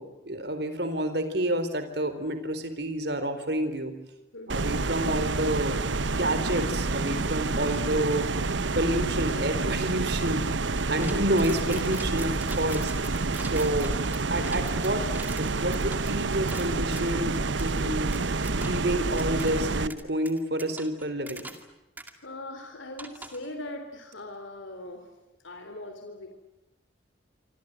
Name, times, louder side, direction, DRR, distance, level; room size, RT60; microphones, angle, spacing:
voice 1, 0.0-3.9 4.5-8.3 8.8-13.9 14.3-18.2 18.5-21.5, right 1 dB, 60° right, 10 dB, 4.0 m, -29 dB
voice 2, 4.3-4.7 10.8-11.1 22.2-25.1 25.4-26.3, left 1 dB, 85° left, 6 dB, 3.5 m, -40 dB
sound 1, 4.5-19.9, right 3 dB, 75° right, 1.0 m, -28 dB
sound 2, 11.0-17.2 17.6-17.7 18.1-18.9 19.2-19.5 19.9-21.7 22.0-22.1 23.0-23.5, right 2 dB, 10° right, 2.3 m, -43 dB
26.5 x 26.0 x 8.0 m, 0.95 s
head